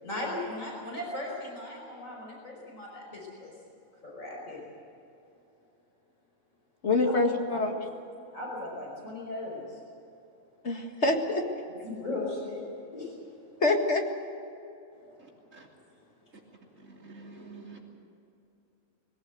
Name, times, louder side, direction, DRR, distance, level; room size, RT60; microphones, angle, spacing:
voice 1, 0.0-3.5 4.0-4.7 7.0-7.2 7.5-7.7 8.3-9.8 11.8-12.6 12.9-13.1, left 2 dB, 75° left, -2 dB, 5.6 m, -37 dB
voice 2, 6.8-7.7 10.6-11.4 13.6-14.0, left 2 dB, 55° left, 2 dB, 2.2 m, -25 dB
voice 3, 15.2-15.7 16.8-17.8, right 3 dB, 70° right, -1 dB, 3.5 m, -48 dB
21.5 x 17.5 x 8.0 m, 2.8 s
omnidirectional pair, 1.4 m